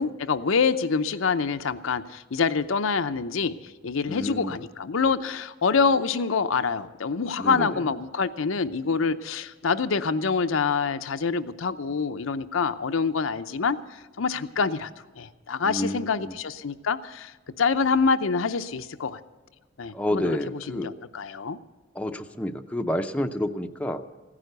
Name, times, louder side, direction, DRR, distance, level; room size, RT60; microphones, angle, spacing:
voice 1, 0.0-3.6 3.8-13.8 14.2-14.9 15.2-19.2 19.8-20.3 20.7-21.6, left 5 dB, 75° left, 9 dB, 0.6 m, -26 dB
voice 2, 4.1-4.6 7.4-7.9 15.6-16.4 19.9-20.9 21.9-24.0, left 1 dB, 5° left, 5 dB, 0.6 m, -29 dB
15.5 x 9.9 x 8.0 m, 1.3 s
head